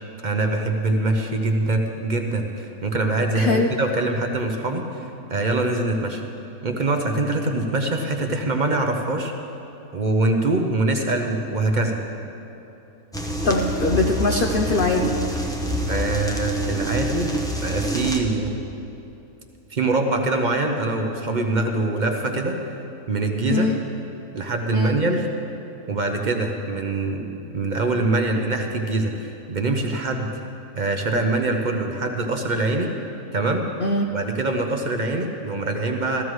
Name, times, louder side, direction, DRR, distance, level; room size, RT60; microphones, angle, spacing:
voice 1, 0.2-6.2 6.6-9.3 9.9-12.0 15.9-17.3 17.6-18.5 19.7-22.6 23.1-23.7 24.3-25.3 25.9-27.2 27.5-30.3 30.8-32.9 33.3-33.7 34.1-36.2, right 2 dB, 45° right, 3 dB, 0.6 m, -23 dB
voice 2, 3.3-3.7 13.4-15.2 23.5-23.8 24.7-25.0 33.8-34.1, left 3 dB, 65° left, 2 dB, 0.5 m, -21 dB
sound 1, 13.1-18.2, right 1 dB, 5° left, 0.6 m, -26 dB
15.0 x 14.5 x 3.1 m, 2.8 s
omnidirectional pair, 1.6 m